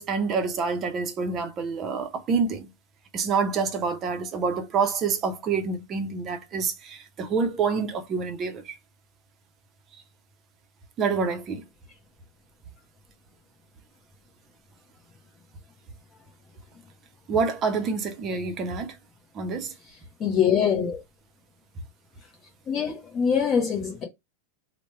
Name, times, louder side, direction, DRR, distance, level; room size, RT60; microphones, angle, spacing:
voice 1, 0.0-2.7 3.1-8.8 11.0-11.6 17.3-18.9 19.3-19.7, right 5 dB, 30° right, 0.6 m, -27 dB
voice 2, 20.2-21.0 22.7-24.0, left 7 dB, 25° left, 0.9 m, -23 dB
3.0 x 2.1 x 3.2 m
supercardioid pair, 145°, 0 cm